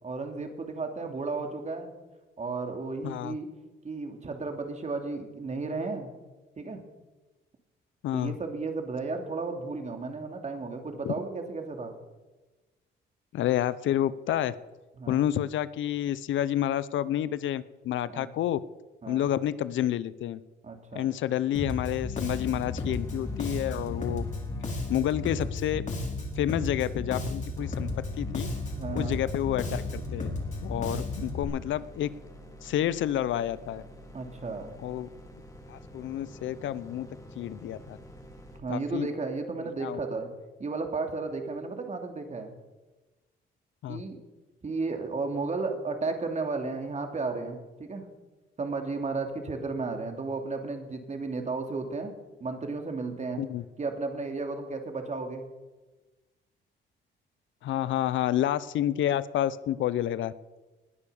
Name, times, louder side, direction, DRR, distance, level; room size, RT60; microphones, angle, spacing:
voice 1, 0.0-1.9 2.4-3.5 3.8-6.1 6.6-6.8 8.1-11.9 15.0-15.3 18.1-18.3 19.0-19.3 20.6-21.1 28.8-29.2 30.8-31.0 34.1-34.7 38.6-40.3 40.6-42.5 43.9-44.2 44.6-48.1 48.6-52.1 52.4-53.4 53.8-55.4, right 3 dB, 35° right, 4 dB, 3.0 m, -33 dB
voice 2, 3.0-3.4 8.0-8.3 11.0-11.1 13.3-14.5 15.1-18.6 19.1-20.4 20.9-24.2 24.9-25.8 26.4-27.9 28.2-28.5 28.9-30.3 30.6-32.1 32.6-33.8 34.8-35.1 35.7-37.1 37.4-38.0 38.7-39.1 39.8-40.0 43.8-44.0 53.4-53.6 57.6-60.3, left 12 dB, 75° left, 17 dB, 0.7 m, -29 dB
Bass guitar, 21.5-31.4, left 2 dB, 35° left, 4.3 m, -34 dB
sound 1, 22.2-27.2 27.6-38.6, left 1 dB, 15° left, 3.4 m, -47 dB
20.0 x 9.8 x 7.0 m, 1.2 s
cardioid pair, 90°, 20 cm